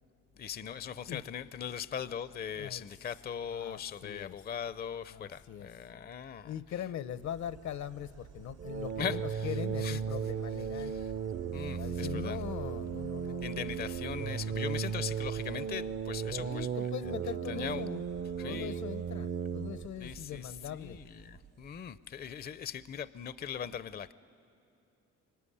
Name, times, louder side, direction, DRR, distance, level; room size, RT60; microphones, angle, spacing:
voice 1, 0.3-6.5 9.0-10.0 10.7-11.1 11.5-12.4 13.4-17.1 17.5-17.8 18.4-18.8 20.0-24.1, left 8 dB, 30° left, 16 dB, 0.5 m, -40 dB
voice 2, 3.5-4.4 5.1-5.7 6.5-11.0 11.7-13.5 16.4-18.0 18.4-21.0, left 9 dB, 70° left, 15 dB, 0.8 m, -41 dB
Insect, 7.0-22.1, right 8 dB, 90° right, 4.8 m, -52 dB
sound 1, 8.6-19.9, right 7 dB, 45° right, 0.6 m, -36 dB
25.0 x 24.5 x 9.9 m, 2.8 s
cardioid pair, 90°, 30 cm